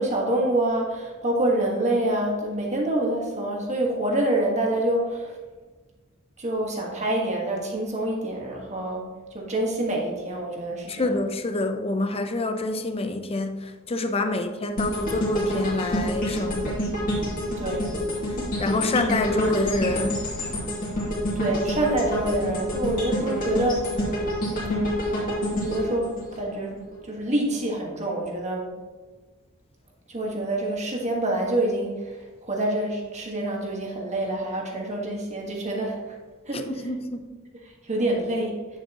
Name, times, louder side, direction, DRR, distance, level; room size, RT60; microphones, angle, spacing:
voice 1, 0.0-5.4 6.4-9.0 9.3-11.2 14.2-14.4 17.6-17.9 21.3-23.9 24.5-26.8 27.0-28.7 30.1-32.2 32.4-36.0 36.5-36.7 37.9-38.5, right 1 dB, 35° right, 0 dB, 1.5 m, -26 dB
voice 2, 10.9-16.8 18.6-20.2 36.5-37.3, left 2 dB, 30° left, 7 dB, 0.6 m, -27 dB
sound 1, 14.8-26.9 27.4-27.5, equal, 45° left, 2.4 m, -28 dB
9.1 x 7.4 x 2.9 m, 1.3 s
head